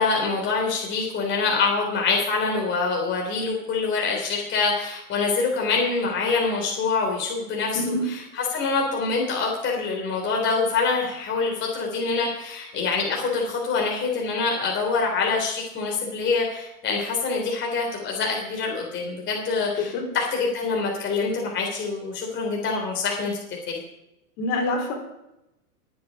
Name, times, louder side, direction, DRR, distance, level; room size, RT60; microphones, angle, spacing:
voice 1, 0.0-23.4 23.7-23.8, left 4 dB, 25° left, -1 dB, 3.3 m, -25 dB
voice 2, 7.7-8.1 19.8-20.1 24.4-24.9, left 2 dB, 50° left, 2 dB, 4.3 m, -26 dB
22.0 x 7.9 x 5.2 m, 0.89 s
hypercardioid pair, 135°, 46 cm